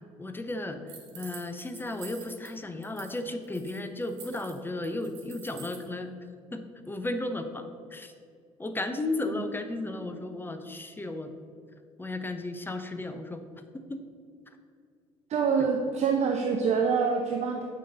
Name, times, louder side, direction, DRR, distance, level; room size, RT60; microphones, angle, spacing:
voice 1, 0.2-0.8 1.1-6.1 6.5-7.6 7.9-8.1 8.6-11.3 12.0-13.4 13.9-14.0, left 2 dB, 10° left, 8 dB, 0.7 m, -34 dB
sound 1, 0.9-2.5 2.8-3.2 3.4-5.9, right 7 dB, 60° right, 1.2 m, -48 dB
voice 2, 15.3-17.6, right 5 dB, 40° right, 3 dB, 0.7 m, -26 dB
6.6 x 5.3 x 5.0 m, 2.3 s
figure-of-eight pair, 55°, 17 cm